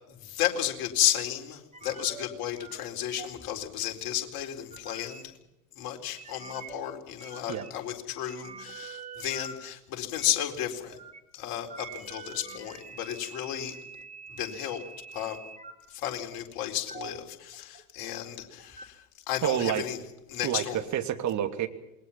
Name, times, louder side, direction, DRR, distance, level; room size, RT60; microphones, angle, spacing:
voice 1, 0.1-5.3 5.8-11.0 11.3-13.8 14.3-14.8 15.1-15.4 15.9-20.0 20.3-20.8, left 11 dB, 50° left, 3 dB, 4.3 m, -33 dB
sound 1, 1.7-2.3 2.6-2.8 3.1-3.5 4.4-5.2 6.2-6.8 7.2-7.9 8.1-9.5 10.2-10.3 10.9-11.2 11.6-15.7 16.2-16.4 16.9-17.2 17.5-18.3 18.6-18.9 19.5-19.6, right 5 dB, 15° right, 3.7 m, -45 dB
voice 2, 19.4-19.8 20.4-21.7, right 11 dB, 40° right, 7 dB, 2.7 m, -28 dB
28.0 x 21.5 x 5.8 m, 0.90 s
figure-of-eight pair, 75°, 44 cm